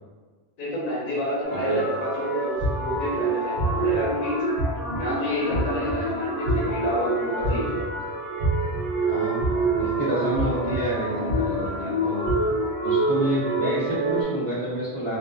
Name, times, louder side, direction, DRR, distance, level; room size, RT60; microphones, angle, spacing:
voice 1, 0.6-4.4 5.0-7.7, left 1 dB, 55° left, -7 dB, 0.7 m, -29 dB
sound 1, 1.4-14.2, right 2 dB, 10° left, 0.7 m, -27 dB
sound 2, 2.6-3.0 3.6-4.0 4.6-5.0 5.5-5.9 6.5-6.9 7.4-7.8 8.4-8.8 9.4-9.8 10.3-10.8 11.3-11.7 12.2-12.3, right 1 dB, 80° right, 0.8 m, -26 dB
voice 2, 9.1-9.5 9.8-12.3 12.8-15.2, right 1 dB, 50° right, -9 dB, 0.4 m, -28 dB
2.4 x 2.2 x 2.2 m, 1.4 s
omnidirectional pair, 1.1 m